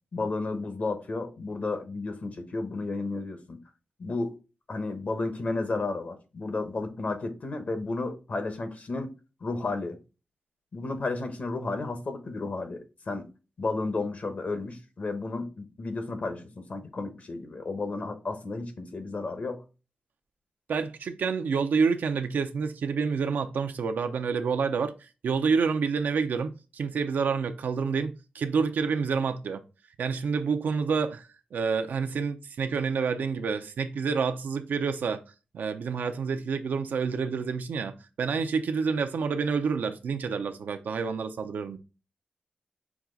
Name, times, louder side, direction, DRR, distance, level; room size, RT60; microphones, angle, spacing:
voice 1, 0.1-3.6 4.0-4.4 4.7-9.1 9.4-10.0 10.7-13.3 13.6-19.6, left 3 dB, 55° left, 1.0 m, -32 dB
voice 2, 20.7-29.6 30.0-35.2 35.5-41.8, right 5 dB, 85° right, 0.5 m, -28 dB
5.9 x 2.4 x 3.8 m
cardioid pair, 70°, 3 cm